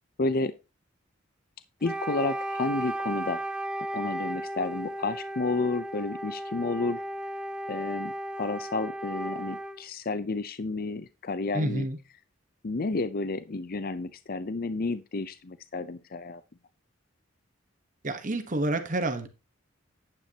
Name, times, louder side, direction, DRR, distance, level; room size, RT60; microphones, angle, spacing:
voice 1, 0.2-0.5 1.8-3.4 3.9-7.0 7.7-11.9 12.6-16.4, left 3 dB, 45° left, 0.6 m, -31 dB
Wind instrument woodwind instrument, 1.8-9.8, right 1 dB, 5° right, 0.6 m, -35 dB
voice 2, 11.5-12.0 18.0-19.3, right 2 dB, 40° right, 1.2 m, -28 dB
10.0 x 9.2 x 2.8 m
head